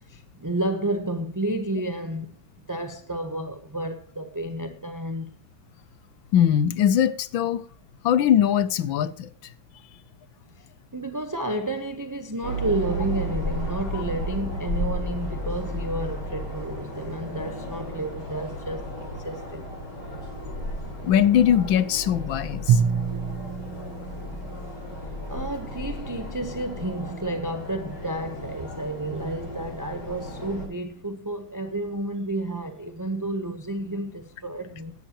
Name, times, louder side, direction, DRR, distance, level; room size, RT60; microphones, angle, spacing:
voice 1, 0.1-2.3 2.7-5.3 10.9-18.9 19.2-19.6 25.3-34.9, right 1 dB, 20° right, 0.5 m, -31 dB
voice 2, 6.3-7.6 8.0-9.3 13.9-14.0 21.0-22.8, left 9 dB, 75° left, 1.5 m, -21 dB
sound 1, 12.4-30.7, equal, 55° left, 6.0 m, -34 dB
Drum, 22.7-25.1, right 7 dB, 85° right, 2.1 m, -26 dB
17.0 x 11.5 x 3.0 m
omnidirectional pair, 2.3 m